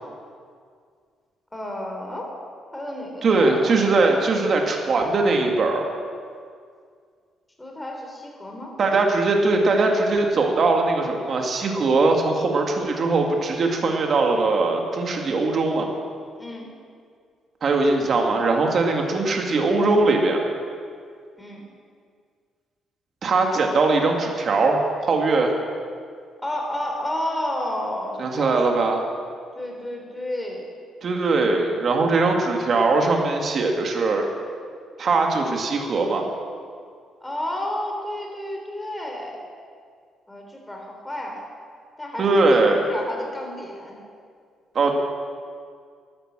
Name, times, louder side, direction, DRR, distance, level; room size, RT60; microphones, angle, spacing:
voice 1, 1.5-2.3 2.7-3.8 7.6-8.7 16.4-16.7 21.4-21.6 26.4-28.8 29.6-30.7 37.2-39.4 40.3-41.4 42.0-44.0, left 1 dB, 10° left, 0 dB, 3.7 m, -31 dB
voice 2, 3.2-5.8 8.8-15.9 17.6-20.4 23.2-24.8 25.1-25.5 28.2-29.0 31.0-34.2 35.0-36.2 42.2-42.8 44.7-44.9, right 3 dB, 45° right, 2 dB, 2.2 m, -20 dB
13.0 x 12.5 x 7.6 m, 2.1 s
cardioid pair, 105°, 0 cm